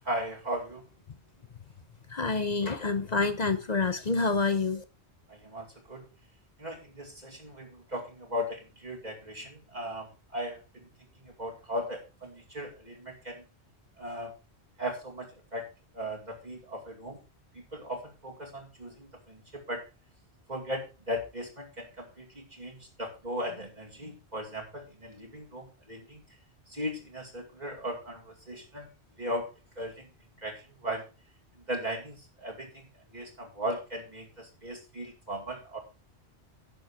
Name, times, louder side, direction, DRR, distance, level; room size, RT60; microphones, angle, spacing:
voice 1, 0.0-0.9 5.3-6.1 6.6-10.9 11.2-13.4 14.0-14.3 14.8-15.7 15.9-17.2 17.5-19.8 20.5-26.2 26.7-28.9 29.2-29.5 29.8-30.1 30.4-31.1 31.7-35.8, equal, 40° right, -1 dB, 2.5 m, -37 dB
voice 2, 2.1-4.8, left 4 dB, 40° left, 11 dB, 0.8 m, -27 dB
11.0 x 7.0 x 4.7 m, 0.31 s
omnidirectional pair, 1.1 m